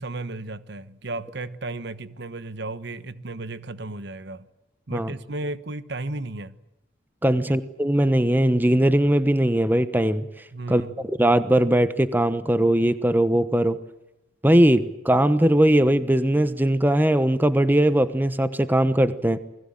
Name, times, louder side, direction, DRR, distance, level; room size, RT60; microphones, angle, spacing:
voice 1, 0.0-4.5 4.9-6.5 7.3-7.4 10.5-10.9, right 2 dB, 60° right, 1.2 m, -34 dB
voice 2, 7.2-10.3 10.7-13.8 14.4-19.4, right 1 dB, 10° right, 1.0 m, -20 dB
29.0 x 21.0 x 9.0 m
head